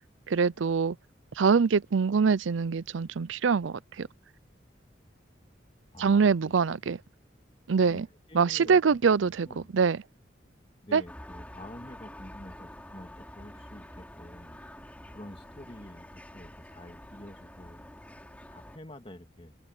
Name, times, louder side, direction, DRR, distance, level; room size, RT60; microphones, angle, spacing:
voice 1, 0.3-1.0 1.4-4.1 6.0-7.0 7.7-8.1 8.3-10.0 10.9-11.0, right 5 dB, 90° right, 0.5 m, -24 dB
voice 2, 5.9-6.4 7.9-8.0 8.3-8.8 9.2-9.7 10.8-14.6 15.1-17.8 18.5-19.6, left 1 dB, 30° left, 2.2 m, -48 dB
sound 1, 11.1-18.8, left 1 dB, 10° left, 6.4 m, -47 dB
open air
head